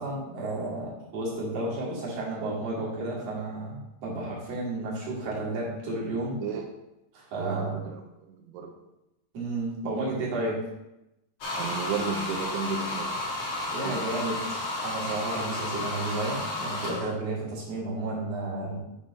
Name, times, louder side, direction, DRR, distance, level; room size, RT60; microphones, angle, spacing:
voice 1, 0.0-6.4 7.1-7.8 9.3-10.6 13.7-18.8, right 2 dB, 50° right, -6 dB, 3.8 m, -32 dB
voice 2, 7.4-8.0 8.3-8.7 11.6-13.1 13.8-14.0, right 6 dB, 85° right, 3 dB, 2.3 m, -33 dB
sound 1, 11.4-17.1, left 2 dB, 85° left, 1.1 m, -32 dB
7.9 x 4.4 x 5.7 m, 0.92 s
omnidirectional pair, 5.6 m